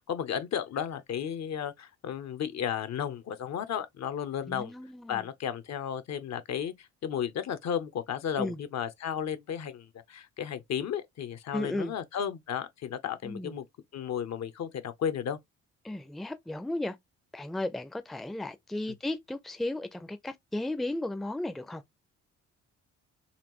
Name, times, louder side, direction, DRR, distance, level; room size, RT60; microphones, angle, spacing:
voice 1, 0.0-4.7 5.1-13.6 13.9-15.4, left 8 dB, 60° left, 0.8 m, -34 dB
voice 2, 4.5-5.2 8.4-8.6 11.5-11.9 13.2-13.6 15.8-17.0 17.3-21.8, left 1 dB, ahead, 0.5 m, -34 dB
4.2 x 2.6 x 3.0 m
cardioid pair, 90°, 30 cm